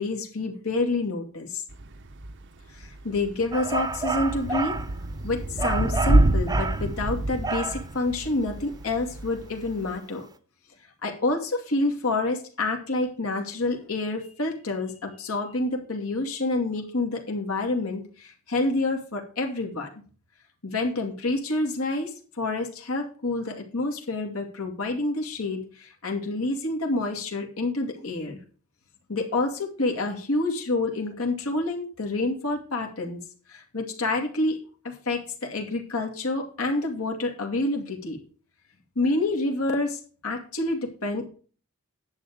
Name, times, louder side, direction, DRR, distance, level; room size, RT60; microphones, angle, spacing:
voice 1, 0.0-1.6 2.7-4.8 5.2-10.3 11.0-19.9 20.6-28.4 29.1-33.2 33.5-34.6 34.8-38.2 39.0-41.3, left 2 dB, 75° left, 1 dB, 2.4 m, -28 dB
Thunder / Rain, 1.7-10.0, right 1 dB, 55° right, 0.8 m, -28 dB
sound 1, 3.5-4.9 5.6-6.8 7.4-7.8, right 4 dB, 15° right, 0.8 m, -30 dB
10.5 x 7.6 x 5.1 m, 0.39 s
head